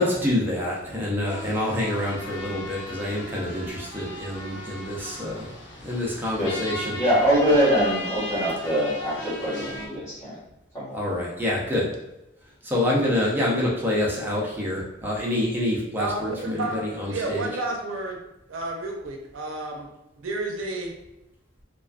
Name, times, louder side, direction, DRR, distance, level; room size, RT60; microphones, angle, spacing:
voice 1, 0.0-5.5 5.8-7.0 10.9-11.9 12.6-17.5, left 1 dB, 10° right, -4 dB, 0.5 m, -27 dB
sound 1, 1.3-9.9, left 1 dB, 70° left, 0.6 m, -36 dB
voice 2, 7.0-10.4 10.7-11.0, equal, 15° left, -16 dB, 1.2 m, -23 dB
voice 3, 16.0-18.2 18.5-19.9 20.2-20.9, right 2 dB, 80° right, 1 dB, 0.5 m, -31 dB
2.4 x 2.3 x 2.3 m, 0.91 s
head